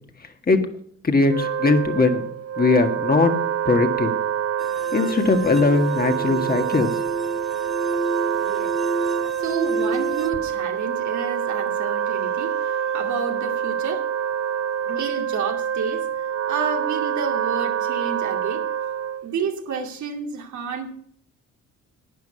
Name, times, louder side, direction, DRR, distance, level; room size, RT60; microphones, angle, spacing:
voice 1, 0.2-0.6 1.0-2.3 2.6-3.3 3.7-4.1 4.9-6.9, left 3 dB, 30° left, 1.8 m, -20 dB
Wind instrument woodwind instrument, 1.2-19.3, right 9 dB, 50° right, 0.9 m, -26 dB
sound 1, 4.6-10.3, right 2 dB, ahead, 0.7 m, -30 dB
voice 2, 8.4-9.1 9.4-14.1 14.8-18.7 19.2-20.9, right 6 dB, 70° right, 2.4 m, -30 dB
11.5 x 9.4 x 5.7 m
cardioid pair, 90°, 30 cm